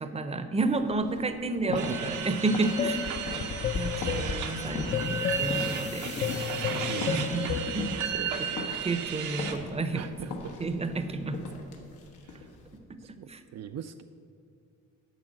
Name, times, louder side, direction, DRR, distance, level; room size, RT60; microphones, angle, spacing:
voice 1, 0.0-3.2 3.7-8.1 8.4-8.5 8.8-10.1 10.6-11.4 13.3-13.4, right 3 dB, 20° right, 10 dB, 0.7 m, -31 dB
sound 1, 0.5-12.8, left 2 dB, 90° left, 1.2 m, -41 dB
voice 2, 1.7-2.2 6.9-7.5 8.1-8.8 9.9-10.6 12.2-12.5 13.0-14.0, right 10 dB, 60° right, 7 dB, 0.4 m, -41 dB
sound 2, 1.8-9.5, right 7 dB, 75° right, 0.9 m, -34 dB
sound 3, 2.8-7.9, left 7 dB, 35° left, 0.5 m, -32 dB
8.3 x 5.4 x 7.6 m, 2.4 s
cardioid pair, 90°, 30 cm